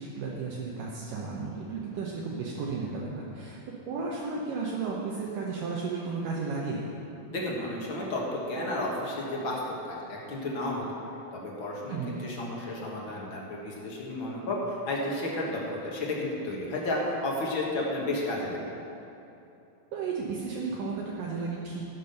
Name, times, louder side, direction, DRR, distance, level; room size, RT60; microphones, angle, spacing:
voice 1, 0.0-3.6 3.9-6.8 11.9-12.2 19.9-21.8, right 4 dB, 70° right, -4 dB, 2.5 m, -33 dB
voice 2, 7.3-14.6 14.8-18.6, left 1 dB, 50° left, -3 dB, 1.7 m, -32 dB
14.0 x 6.1 x 6.7 m, 2.8 s
omnidirectional pair, 4.1 m